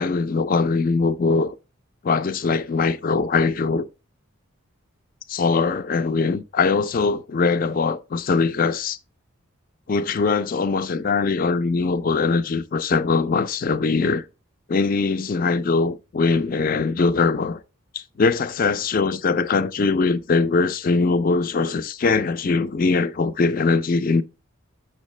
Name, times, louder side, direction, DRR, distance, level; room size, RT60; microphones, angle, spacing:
voice 1, 0.0-1.6 2.0-3.9 5.3-9.0 9.9-14.2 14.7-17.6 17.9-24.2, left 4 dB, 40° left, 0.4 m, -21 dB
6.5 x 5.5 x 3.1 m
head